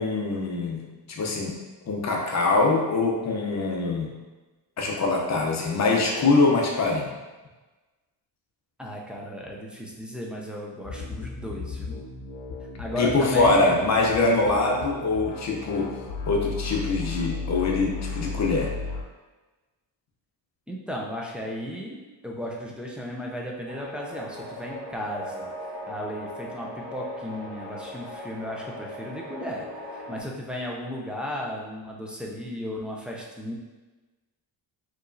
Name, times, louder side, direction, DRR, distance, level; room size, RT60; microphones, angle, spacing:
voice 1, 0.0-1.5 1.9-4.1 4.8-7.1 12.9-16.0 16.3-18.7, left 3 dB, 40° left, -1 dB, 0.7 m, -23 dB
voice 2, 8.8-12.0 12.8-13.8 20.7-25.5 25.9-29.7 29.9-33.5, equal, 5° right, -2 dB, 0.3 m, -35 dB
sound 1, 10.8-19.0, left 3 dB, 80° left, 0.7 m, -35 dB
sound 2, 23.7-30.2, left 1 dB, 55° right, 1.2 m, -39 dB
4.6 x 3.1 x 2.6 m, 1.2 s
cardioid pair, 145°, 45 cm